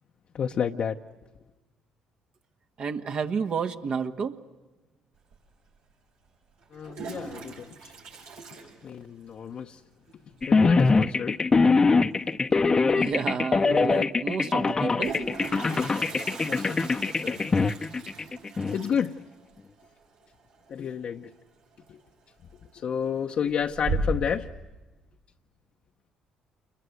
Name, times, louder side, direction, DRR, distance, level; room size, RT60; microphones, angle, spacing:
voice 1, 0.4-0.9 6.7-7.5 8.8-9.7 10.5-11.4 15.8-16.6 17.2-17.4 18.7-19.1 20.7-21.3 22.8-24.5, left 7 dB, 55° left, 2 dB, 0.9 m, -30 dB
voice 2, 2.8-4.4 12.9-15.2, right 6 dB, 55° right, 6 dB, 1.6 m, -30 dB
Toilet flush, 5.3-5.4 6.6-9.4 9.7-9.8 10.1-10.2 10.4-10.8 12.6-12.7 13.0-13.1 14.6-21.3 21.6-22.1 22.5-23.0 23.4-24.4, right 2 dB, 80° right, 6.7 m, -37 dB
sound 1, 10.4-18.8, left 4 dB, 30° left, 0.8 m, -23 dB
28.5 x 22.5 x 8.0 m, 1.2 s
supercardioid pair, 65°, 2 cm